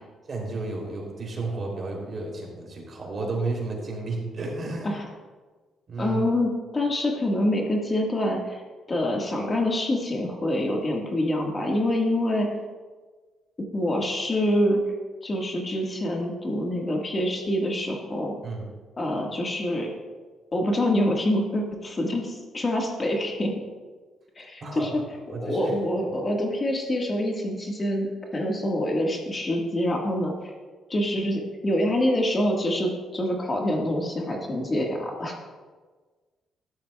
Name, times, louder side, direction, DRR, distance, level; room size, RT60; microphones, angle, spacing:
voice 1, 0.3-4.9 5.9-6.2 18.4-18.6 24.6-25.0 25.3-25.7, right 3 dB, 45° right, -1 dB, 3.1 m, -32 dB
voice 2, 6.0-8.6 8.9-12.5 13.7-14.8 15.2-18.3 19.0-19.9 20.5-23.5 24.4-25.0 25.4-30.5 30.9-35.3, left 1 dB, 30° left, 0 dB, 1.6 m, -26 dB
13.5 x 11.0 x 2.3 m, 1.4 s
cardioid pair, 90°, 0 cm